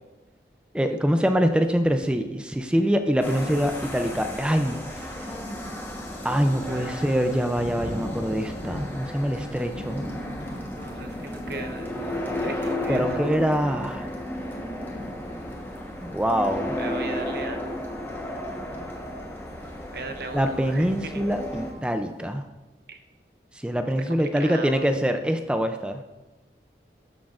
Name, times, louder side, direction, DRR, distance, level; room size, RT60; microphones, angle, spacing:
voice 1, 0.7-4.8 6.2-10.0 12.9-14.0 16.0-16.7 20.3-22.4 23.6-26.0, equal, 5° right, 6 dB, 0.4 m, -24 dB
sound 1, 3.2-21.7, left 1 dB, 10° left, 1.1 m, -34 dB
Thunder / Rain, 4.2-22.3, equal, 80° left, 2.6 m, -42 dB
voice 2, 10.7-13.3 16.8-17.6 19.6-20.9 21.1-21.2 22.9-23.0 24.4-24.9, right 3 dB, 60° right, 6 dB, 0.8 m, -38 dB
13.0 x 6.4 x 2.5 m, 1.1 s
head